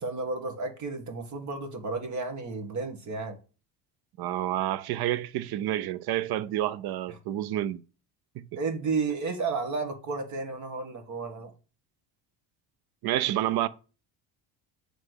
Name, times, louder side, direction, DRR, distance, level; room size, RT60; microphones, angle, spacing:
voice 1, 0.0-3.4 8.5-11.5, right 4 dB, 40° right, 1.6 m, -32 dB
voice 2, 4.2-7.8 8.4-8.6 13.0-13.7, right 13 dB, 60° right, 0.7 m, -29 dB
7.5 x 3.4 x 6.3 m
cardioid pair, 125°, 42 cm